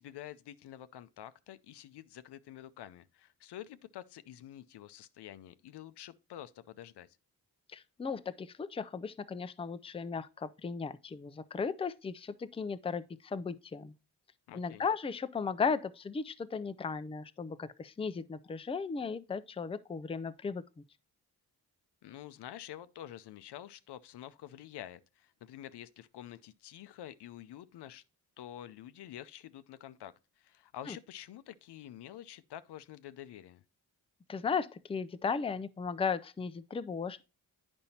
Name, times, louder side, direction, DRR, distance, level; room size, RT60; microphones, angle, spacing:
voice 1, 0.0-7.2 14.5-14.9 22.0-28.0 28.4-33.6, left 12 dB, 85° left, 0.5 m, -48 dB
voice 2, 7.7-13.9 14.5-20.8 30.9-31.0 34.3-37.2, left 5 dB, 15° left, 0.4 m, -36 dB
8.9 x 5.3 x 2.8 m
cardioid pair, 60°, 39 cm